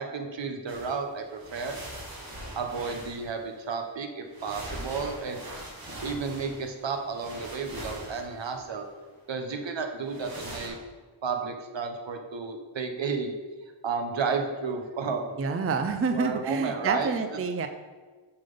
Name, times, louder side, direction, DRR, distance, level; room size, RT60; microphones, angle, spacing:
voice 1, 0.0-1.8 2.6-5.4 6.0-8.9 9.3-10.8 11.2-13.3 13.8-15.4 16.1-17.1, right 5 dB, 70° right, 4 dB, 0.9 m, -32 dB
sound 1, 0.7-1.0 1.3-3.6 4.3-8.9 10.0-10.7, right 1 dB, 50° right, 1.7 m, -42 dB
voice 2, 15.4-17.7, right 4 dB, 30° right, 7 dB, 0.4 m, -28 dB
6.9 x 3.8 x 5.4 m, 1.4 s
wide cardioid pair, 105°, 46 cm